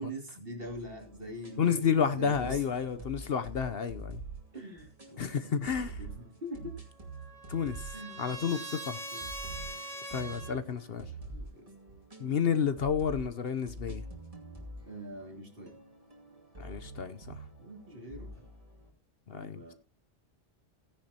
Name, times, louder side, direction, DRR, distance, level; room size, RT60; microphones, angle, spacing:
voice 1, 0.0-3.1 4.5-6.8 7.9-8.4 9.1-9.2 11.3-11.7 14.9-15.8 17.6-18.5 19.3-19.7, right 1 dB, 50° right, 2.9 m, -44 dB
sound 1, 0.6-18.9, right 2 dB, 30° right, 2.5 m, -47 dB
voice 2, 1.6-4.2 5.2-6.0 7.5-9.0 10.1-11.1 12.2-14.0 16.6-17.4 19.3-19.7, left 7 dB, 60° left, 1.0 m, -31 dB
Trumpet, 6.7-10.5, right 1 dB, 85° right, 3.5 m, -42 dB
16.0 x 10.0 x 2.8 m
omnidirectional pair, 1.2 m